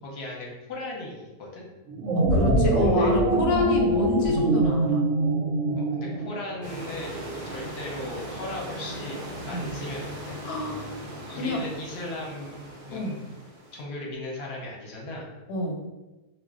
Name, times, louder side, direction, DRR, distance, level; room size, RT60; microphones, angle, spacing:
voice 1, 0.0-1.7 2.8-3.1 5.8-7.2 7.4-10.4 11.3-12.6 12.9-13.2 13.7-15.3, left 1 dB, 55° left, -2 dB, 0.8 m, -37 dB
sound 1, 1.9-6.5, right 1 dB, 65° right, 0.8 m, -23 dB
voice 2, 2.1-5.0 9.5-9.7 10.4-10.9 11.3-11.6 12.9-13.1 15.5-15.8, left 2 dB, 90° left, 2 dB, 1.1 m, -29 dB
sound 2, 6.6-13.8, right 1 dB, 85° right, 0.4 m, -38 dB
2.4 x 2.1 x 3.6 m, 1.1 s
omnidirectional pair, 1.6 m